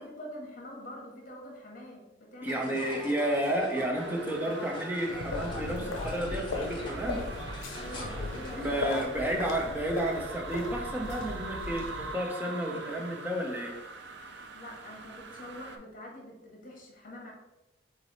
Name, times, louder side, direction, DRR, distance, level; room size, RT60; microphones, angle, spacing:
voice 1, 0.0-3.1 3.5-3.8 7.7-9.1 14.5-17.3, left 1 dB, 45° left, -1 dB, 1.2 m, -45 dB
sound 1, 2.4-9.0, equal, 25° left, 1.0 m, -42 dB
voice 2, 2.4-7.2 8.6-13.7, right 1 dB, 10° right, 0 dB, 0.6 m, -31 dB
sound 2, 3.9-15.8, right 3 dB, 65° right, 0.5 m, -43 dB
sound 3, 5.1-12.1, left 3 dB, 90° left, 0.5 m, -38 dB
4.0 x 3.2 x 4.0 m, 0.98 s
head